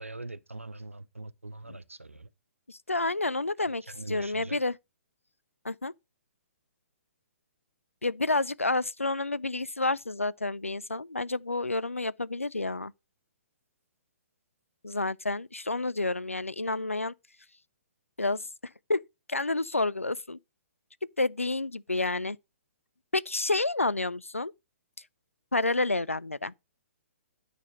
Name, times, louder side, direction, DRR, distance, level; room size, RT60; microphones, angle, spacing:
voice 1, 0.0-2.3 3.9-4.6, right 2 dB, 85° right, 0.6 m, -42 dB
voice 2, 2.7-4.8 5.6-5.9 8.0-12.9 14.8-17.1 18.2-18.5 18.9-19.0 19.3-20.4 21.2-22.4 23.1-24.5 25.5-26.5, left 2 dB, 85° left, 0.4 m, -29 dB
9.6 x 4.1 x 5.3 m
figure-of-eight pair, 125°, 7 cm